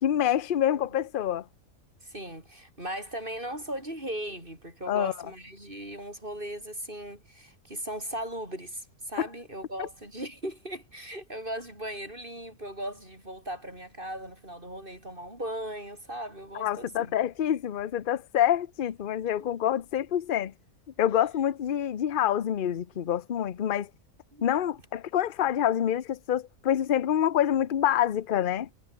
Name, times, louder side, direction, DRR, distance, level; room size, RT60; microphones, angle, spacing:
voice 1, 0.0-1.4 4.9-5.1 16.5-20.5 21.0-23.9 24.4-28.7, left 10 dB, 45° left, 0.8 m, -26 dB
voice 2, 2.0-17.1 19.4-19.5 24.3-24.7, right 1 dB, 35° right, 8.4 m, -38 dB
omnidirectional pair, 1.6 m